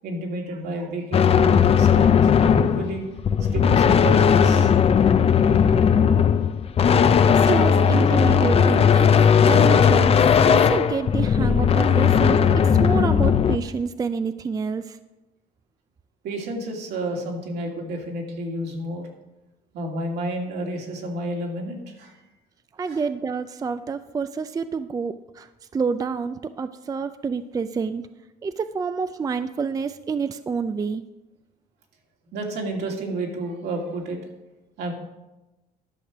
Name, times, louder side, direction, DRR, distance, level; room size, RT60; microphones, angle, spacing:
voice 1, 0.0-3.0 3.5-4.7 16.2-19.1 19.7-22.1 22.9-23.0 32.3-34.2 34.8-34.9, right 1 dB, 75° right, 0 dB, 2.5 m, -30 dB
sound 1, 1.1-13.6, left 7 dB, 35° left, 0.6 m, -17 dB
voice 2, 7.2-15.0 22.8-28.0 28.4-31.0, right 5 dB, 20° right, 11 dB, 0.4 m, -28 dB
11.5 x 6.5 x 6.0 m, 1.0 s
cardioid pair, 110°, 17 cm